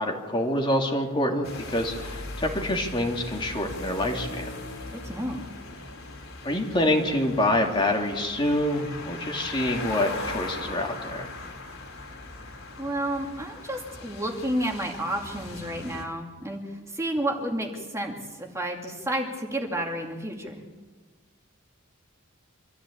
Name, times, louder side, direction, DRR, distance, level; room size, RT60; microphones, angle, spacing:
voice 1, 0.0-4.5 6.4-11.3, left 1 dB, 25° left, 1 dB, 2.6 m, -26 dB
sound 1, 1.4-16.0, left 2 dB, 70° left, 4.4 m, -39 dB
voice 2, 4.9-5.5 12.8-20.7, right 1 dB, 15° right, 1 dB, 2.4 m, -31 dB
25.5 x 14.0 x 8.6 m, 1.4 s
head